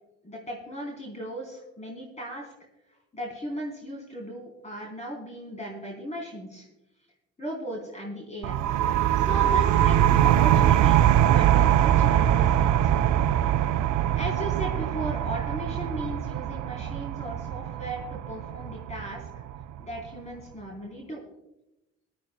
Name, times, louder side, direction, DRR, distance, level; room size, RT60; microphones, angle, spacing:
voice 1, 0.2-2.5 3.1-6.7 7.4-8.6 9.2-13.0 14.2-19.2 19.8-21.2, equal, 25° left, -1 dB, 3.7 m, -37 dB
sound 1, 8.4-19.8, right 11 dB, 75° right, 0.5 m, -22 dB
21.0 x 12.0 x 2.2 m, 0.94 s
cardioid pair, 70°, 29 cm